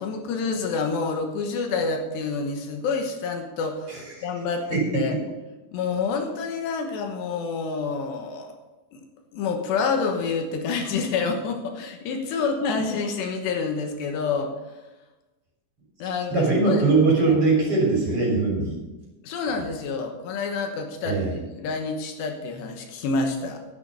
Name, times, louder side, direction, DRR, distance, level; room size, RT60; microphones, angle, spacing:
voice 1, 0.0-5.2 5.7-8.5 8.9-9.0 9.3-14.5 16.0-16.8 19.2-21.2 21.6-23.6, left 4 dB, 70° left, 4 dB, 3.2 m, -28 dB
voice 2, 3.9-4.3 4.7-5.2 16.3-18.7 21.0-21.3, right 3 dB, 30° right, -2 dB, 3.9 m, -21 dB
11.0 x 9.6 x 5.4 m, 1.1 s
omnidirectional pair, 5.5 m